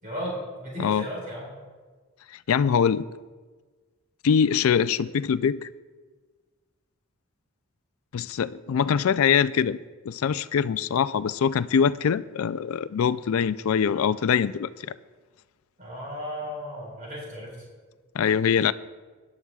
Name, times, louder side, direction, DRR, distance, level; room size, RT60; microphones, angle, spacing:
voice 1, 0.0-1.5 15.8-17.6, equal, 35° right, -4 dB, 4.3 m, -35 dB
voice 2, 2.5-3.0 4.2-5.7 8.1-9.8 10.1-14.9 18.1-18.7, left 7 dB, 70° left, 16 dB, 0.4 m, -23 dB
19.5 x 11.0 x 2.3 m, 1.4 s
head